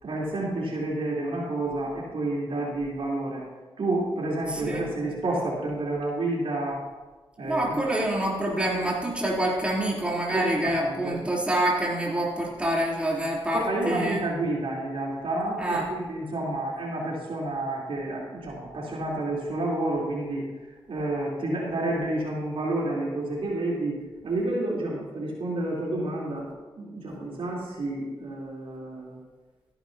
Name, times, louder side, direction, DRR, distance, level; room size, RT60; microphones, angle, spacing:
voice 1, 0.0-3.4 3.8-6.8 7.4-7.8 10.3-11.2 13.5-20.5 20.9-26.5 26.8-29.2, right 2 dB, 65° right, -4 dB, 3.8 m, -30 dB
voice 2, 4.5-4.8 7.4-14.2 15.6-15.9, right 1 dB, 10° right, -5 dB, 3.6 m, -26 dB
15.5 x 11.0 x 2.9 m, 1.2 s
cardioid pair, 60°, 10 cm